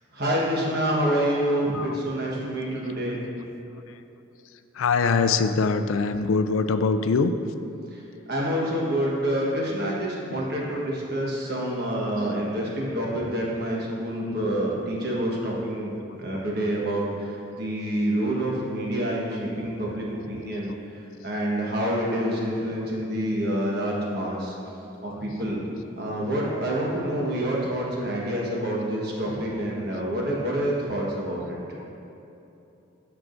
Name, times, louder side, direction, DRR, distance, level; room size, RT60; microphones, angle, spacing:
voice 1, 0.1-3.2 7.9-8.0 8.3-20.7 21.2-24.5 25.0-25.6 26.0-31.8, right 1 dB, 50° right, -4 dB, 1.3 m, -27 dB
voice 2, 4.7-7.3 10.7-10.8 12.2-12.3 19.3-19.4 25.1-25.2, left 4 dB, 85° left, 10 dB, 0.4 m, -23 dB
13.5 x 4.7 x 2.6 m, 2.9 s
head